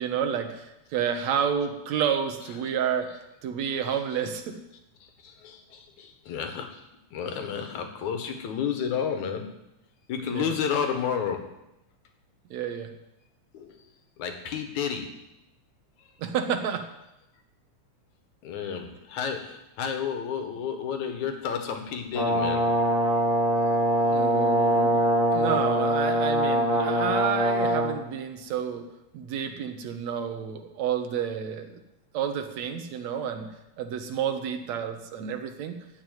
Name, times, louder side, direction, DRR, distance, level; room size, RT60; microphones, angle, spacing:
voice 1, 0.0-4.6 10.3-10.5 12.5-12.9 16.2-16.9 24.1-25.0 25.3-28.9 29.1-31.8 32.1-33.5 33.8-35.8, right 8 dB, 70° right, 7 dB, 2.3 m, -30 dB
voice 2, 5.0-6.8 7.1-9.6 10.1-11.5 13.5-13.8 14.2-15.2 18.4-22.6, left 7 dB, 75° left, 5 dB, 2.8 m, -31 dB
Brass instrument, 22.1-28.0, equal, 20° left, 3.0 m, -23 dB
15.5 x 6.0 x 9.3 m, 0.90 s
omnidirectional pair, 3.5 m